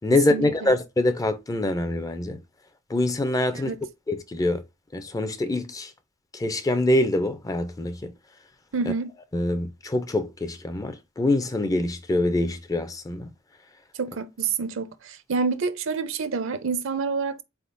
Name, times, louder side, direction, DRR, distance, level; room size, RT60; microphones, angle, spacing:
voice 1, 0.0-2.4 2.9-3.7 4.1-4.6 4.9-5.9 6.3-8.1 9.3-13.3, left 2 dB, 15° left, 0.4 m, -25 dB
voice 2, 8.7-9.1 14.0-17.4, right 5 dB, 65° right, 0.6 m, -27 dB
4.1 x 3.5 x 2.5 m
head